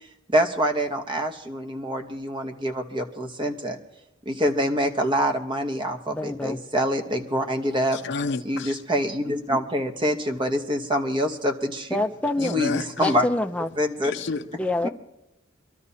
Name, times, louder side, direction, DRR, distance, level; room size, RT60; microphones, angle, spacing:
voice 1, 0.3-3.8 4.2-8.0 8.4-12.0 12.4-13.3 13.8-14.1, equal, 25° right, 1.1 m, -25 dB
voice 2, 6.1-6.6 11.9-12.6 13.0-13.7 14.6-14.9, left 2 dB, 5° left, 0.5 m, -26 dB
voice 3, 7.9-8.8 12.4-13.2 14.0-14.6, left 4 dB, 65° left, 0.5 m, -31 dB
25.5 x 13.0 x 2.8 m
head